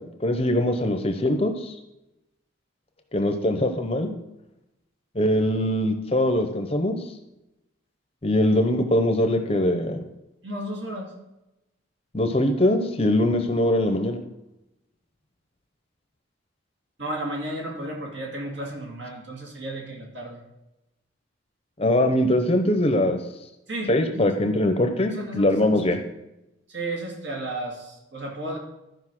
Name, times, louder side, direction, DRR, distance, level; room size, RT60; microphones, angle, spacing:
voice 1, 0.2-1.7 3.1-4.1 5.1-7.0 8.2-10.0 12.1-14.2 21.8-23.2 23.9-26.0, left 1 dB, 30° left, 6 dB, 0.7 m, -22 dB
voice 2, 10.4-11.1 17.0-20.4 23.7-24.4 25.1-25.9 26.7-28.6, right 1 dB, 60° right, 0 dB, 2.2 m, -33 dB
12.0 x 5.2 x 6.0 m, 0.93 s
head